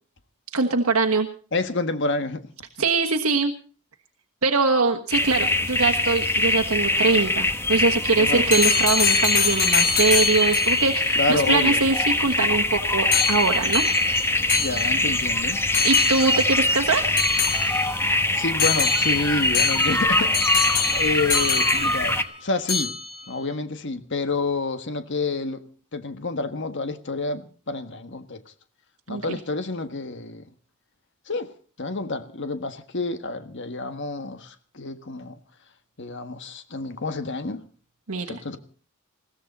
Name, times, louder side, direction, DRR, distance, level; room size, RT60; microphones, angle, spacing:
voice 1, 0.5-1.3 2.8-3.5 4.4-13.8 15.8-17.0 29.1-29.4 38.1-38.4, right 4 dB, 80° right, 1.4 m, -23 dB
voice 2, 1.5-2.4 8.2-8.4 11.1-11.8 14.6-15.6 18.3-22.9 23.3-25.6 25.9-28.4 29.1-30.4 31.3-31.5 31.8-35.4 36.0-37.6 38.2-38.6, left 3 dB, 55° left, 1.5 m, -28 dB
sound 1, 5.1-22.2, left 2 dB, 10° left, 1.1 m, -23 dB
sound 2, 8.5-10.9 13.1-15.2 15.7-16.5 17.2-18.1 18.6-22.3 22.7-23.2, left 5 dB, 80° left, 5.4 m, -25 dB
21.0 x 16.0 x 4.2 m
head